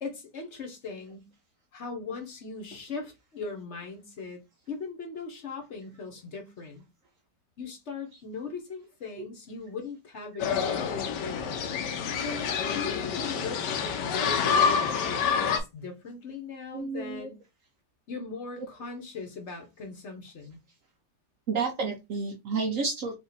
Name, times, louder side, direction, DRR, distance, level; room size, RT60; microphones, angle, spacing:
voice 1, 0.0-1.3 1.7-4.4 4.7-6.8 7.6-11.7 12.2-12.4 12.7-17.4 18.1-20.6, left 4 dB, 50° left, 1.0 m, -39 dB
sound 1, 10.4-15.6, left 6 dB, 80° left, 1.3 m, -27 dB
voice 2, 16.7-17.3 21.5-23.1, right 4 dB, 65° right, 0.8 m, -30 dB
3.6 x 2.5 x 3.9 m
omnidirectional pair, 1.9 m